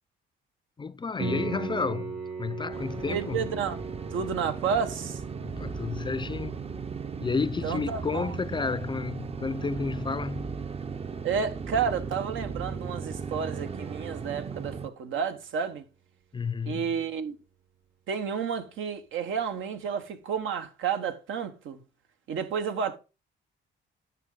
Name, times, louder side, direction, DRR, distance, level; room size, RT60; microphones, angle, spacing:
voice 1, 0.8-2.1 2.4-3.5 5.4-6.6 7.2-10.5 16.3-16.9, left 5 dB, 25° left, 0.4 m, -31 dB
Piano, 1.2-11.8 15.2-15.3, right 5 dB, 60° right, 5.7 m, -41 dB
sound 1, 2.7-14.9, right 5 dB, 30° right, 0.6 m, -36 dB
voice 2, 3.1-3.8 4.1-5.2 7.6-8.3 11.2-15.8 16.7-17.3 18.1-21.8 22.3-23.0, right 6 dB, 80° right, 1.2 m, -31 dB
9.8 x 5.9 x 3.8 m
cardioid pair, 90°, 20 cm